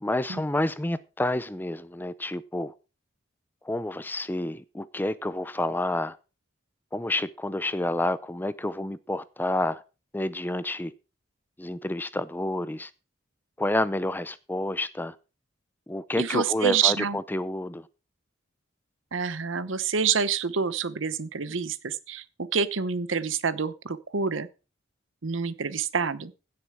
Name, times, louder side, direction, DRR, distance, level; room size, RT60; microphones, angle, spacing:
voice 1, 0.0-2.7 3.6-6.2 6.9-9.8 10.1-10.9 11.6-12.9 13.6-15.2 15.9-17.9, left 1 dB, 10° left, 0.5 m, -29 dB
voice 2, 16.2-17.2 19.1-22.2 22.5-24.5 25.2-26.3, right 6 dB, 70° right, 0.9 m, -27 dB
16.0 x 7.0 x 4.8 m
head